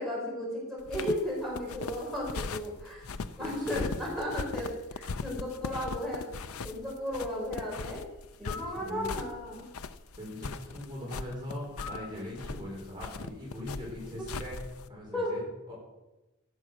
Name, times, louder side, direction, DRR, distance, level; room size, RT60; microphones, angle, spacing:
voice 1, 0.0-3.0 3.4-6.2 6.6-8.0 8.4-9.7 15.1-15.3, left 1 dB, ahead, -5 dB, 5.0 m, -34 dB
sound 1, 0.8-14.9, left 4 dB, 85° left, 0.6 m, -39 dB
voice 2, 3.0-4.0 8.7-9.1 10.2-14.6 14.9-15.7, left 1 dB, 20° right, -4 dB, 4.7 m, -41 dB
sound 2, 8.4-8.8 11.8-12.2, left 4 dB, 40° left, 1.6 m, -41 dB
16.0 x 8.4 x 6.4 m, 1.0 s
head